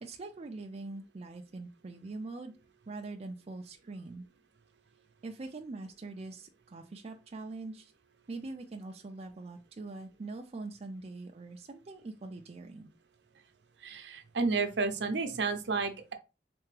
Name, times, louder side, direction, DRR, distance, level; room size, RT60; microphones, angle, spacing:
voice 1, 0.0-2.6 2.9-4.3 5.2-7.9 8.3-12.9, right 3 dB, 35° right, 3 dB, 0.4 m, -43 dB
voice 2, 13.8-16.1, right 4 dB, 70° right, 6 dB, 0.7 m, -31 dB
3.4 x 3.3 x 3.2 m, 0.29 s
head